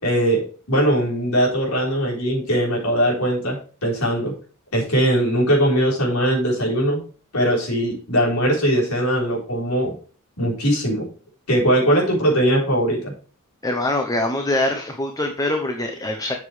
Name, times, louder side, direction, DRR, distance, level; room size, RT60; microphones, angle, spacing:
voice 1, 0.0-4.3 4.7-7.0 7.3-9.9 10.4-11.1 11.5-13.1, right 1 dB, 80° left, -2 dB, 4.0 m, -20 dB
voice 2, 13.6-16.4, left 1 dB, 15° left, 4 dB, 0.8 m, -23 dB
7.9 x 7.4 x 3.3 m, 0.40 s
head